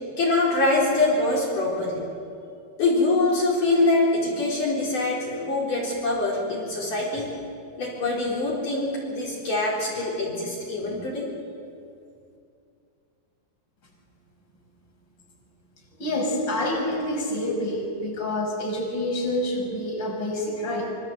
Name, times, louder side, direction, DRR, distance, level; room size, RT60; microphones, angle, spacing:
voice 1, 0.2-2.0 2.8-7.3 7.8-11.3, left 2 dB, 50° left, -5 dB, 5.6 m, -24 dB
voice 2, 16.0-20.9, left 1 dB, 25° left, 0 dB, 5.9 m, -27 dB
27.0 x 26.0 x 8.0 m, 2.5 s
omnidirectional pair, 4.8 m